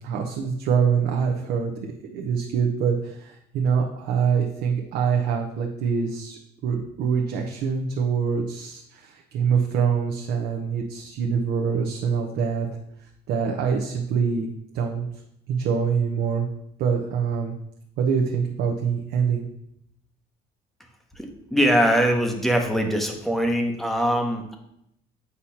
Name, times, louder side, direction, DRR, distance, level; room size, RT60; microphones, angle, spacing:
voice 1, 0.0-1.7 2.0-12.7 13.0-15.1 15.5-16.5 16.8-17.5 18.0-19.5, right 6 dB, 70° right, 2 dB, 0.7 m, -25 dB
voice 2, 21.1-24.6, equal, ahead, 3 dB, 0.7 m, -22 dB
8.1 x 2.9 x 5.6 m, 0.79 s
cardioid pair, 165°, 17 cm